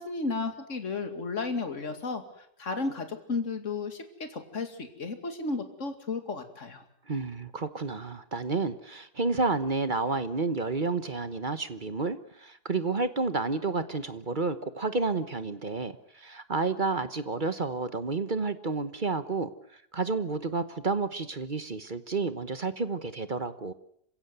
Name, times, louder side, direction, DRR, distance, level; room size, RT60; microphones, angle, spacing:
voice 1, 0.0-2.2 2.6-6.8, left 3 dB, 45° left, 7 dB, 2.7 m, -33 dB
voice 2, 7.1-23.7, right 3 dB, 35° right, 12 dB, 1.0 m, -30 dB
27.0 x 16.5 x 8.1 m, 0.69 s
omnidirectional pair, 1.8 m